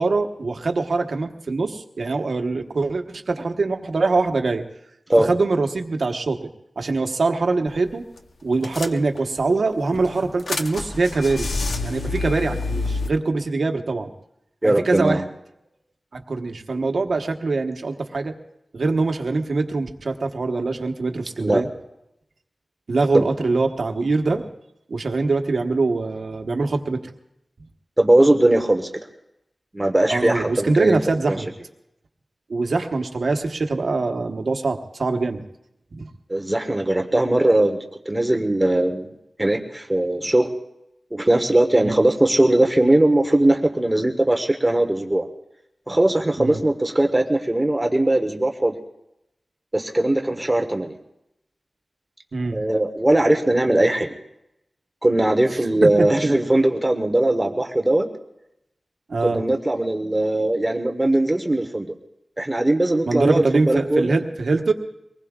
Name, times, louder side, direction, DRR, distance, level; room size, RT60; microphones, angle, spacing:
voice 1, 0.0-4.6 5.2-6.5 6.8-8.0 8.4-11.5 11.8-14.1 14.6-15.2 16.1-18.3 18.7-21.7 22.9-24.4 24.9-27.0 30.1-31.5 32.5-35.4 35.9-36.1 41.8-42.0 46.4-46.6 52.3-52.6 55.8-55.9 56.2-56.4 59.1-59.4 63.1-64.7, right 3 dB, 75° right, 5 dB, 1.2 m, -23 dB
sound 1, 7.7-7.9 8.2-8.3 8.6-9.4 9.9-13.1, left 3 dB, 75° left, 0.8 m, -28 dB
voice 2, 14.6-15.2 21.4-21.7 23.1-23.3 28.0-28.9 29.7-31.0 31.3-31.4 36.3-39.1 39.4-40.5 41.1-45.2 45.9-48.7 49.7-50.9 52.5-54.1 55.0-58.1 59.2-61.9 62.4-64.1, right 1 dB, 20° right, 4 dB, 1.1 m, -19 dB
24.0 x 19.5 x 2.4 m, 0.85 s
wide cardioid pair, 80°, 0 cm